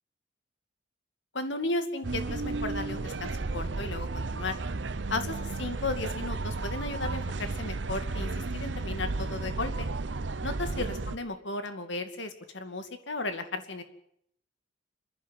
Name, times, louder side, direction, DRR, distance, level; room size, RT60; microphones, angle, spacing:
voice 1, 1.3-4.6 5.1-9.9 10.4-13.8, left 2 dB, 75° left, 8 dB, 2.4 m, -35 dB
sound 1, 2.0-11.2, right 3 dB, 70° right, 0.9 m, -33 dB
27.0 x 11.0 x 9.5 m, 0.71 s
head